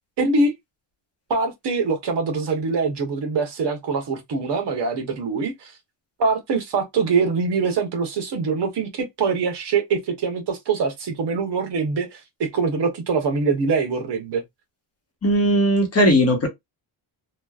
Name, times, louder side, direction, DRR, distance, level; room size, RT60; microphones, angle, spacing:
voice 1, 0.2-0.5 1.3-5.7 6.2-14.4, right 4 dB, 55° right, 1.0 m, -23 dB
voice 2, 15.2-16.5, equal, 30° left, 1.1 m, -18 dB
3.0 x 2.3 x 2.3 m
cardioid pair, 145°, 48 cm